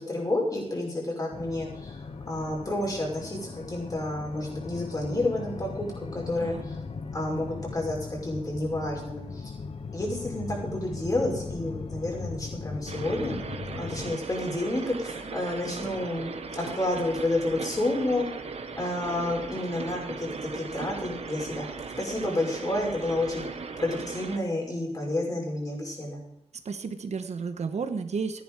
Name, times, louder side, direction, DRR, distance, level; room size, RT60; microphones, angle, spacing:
voice 1, 0.0-2.0 2.3-6.8 7.1-9.5 9.9-13.4 13.8-18.3 18.8-21.7 22.0-23.4 23.8-26.2, left 1 dB, 35° left, -1 dB, 5.9 m, -30 dB
sound 1, 1.3-14.1, left 4 dB, 60° left, 0.9 m, -38 dB
sound 2, 12.9-24.4, right 4 dB, 70° right, 1.3 m, -38 dB
voice 2, 26.6-28.4, right 5 dB, 85° right, 8 dB, 1.2 m, -32 dB
14.0 x 10.5 x 4.9 m, 0.78 s
wide cardioid pair, 110°, 11 cm